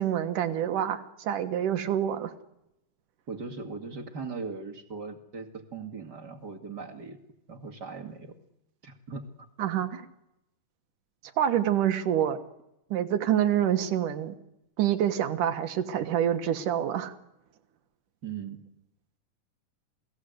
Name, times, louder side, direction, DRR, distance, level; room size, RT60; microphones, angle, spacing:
voice 1, 0.0-2.3 9.6-10.1 11.4-12.4 12.9-14.4 14.8-17.1, right 10 dB, 85° right, 8 dB, 3.0 m, -27 dB
voice 2, 3.3-7.2 7.5-8.3 8.8-9.5 18.2-18.6, right 4 dB, 35° right, 5 dB, 2.4 m, -39 dB
28.5 x 19.5 x 8.0 m, 0.84 s
omnidirectional pair, 3.6 m